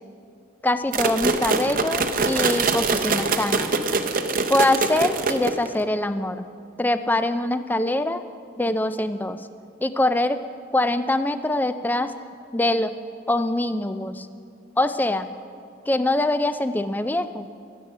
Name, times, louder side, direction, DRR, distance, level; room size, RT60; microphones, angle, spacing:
voice 1, 0.6-3.7 4.5-6.5 6.8-8.2 8.6-9.4 9.8-10.4 10.7-12.1 12.5-13.0 13.3-14.3 14.8-15.3 15.9-17.5, left 1 dB, 10° left, 11 dB, 0.4 m, -23 dB
sound 1, 0.9-5.8, right 3 dB, 45° right, 0.7 m, -24 dB
22.0 x 8.0 x 5.6 m, 2.5 s
head